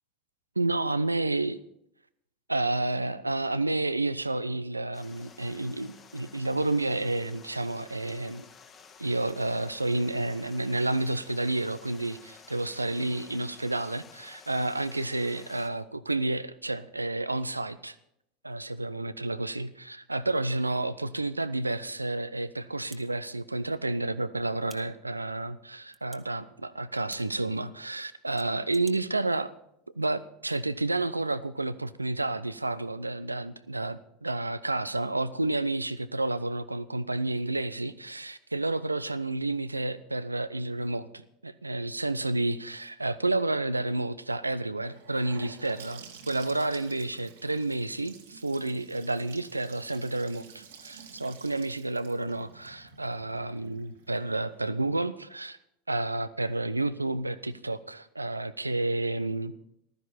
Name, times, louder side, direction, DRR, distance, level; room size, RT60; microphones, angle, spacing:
voice 1, 0.6-1.6 2.5-8.4 9.0-18.0 18.4-29.5 29.9-55.6 55.9-59.5, right 2 dB, 85° right, 15 dB, 0.5 m, -30 dB
Stream, 4.9-15.7, left 6 dB, 30° left, 2.0 m, -53 dB
sound 1, 22.9-23.0 24.6-24.8 25.9-26.2 27.1-27.2 28.4-29.0, right 3 dB, 15° right, 1.4 m, -49 dB
Gurgling / Sink (filling or washing) / Bathtub (filling or washing), 44.8-54.7, right 6 dB, 70° right, 1.9 m, -51 dB
15.0 x 13.0 x 4.3 m, 0.77 s
figure-of-eight pair, 80°, 0 cm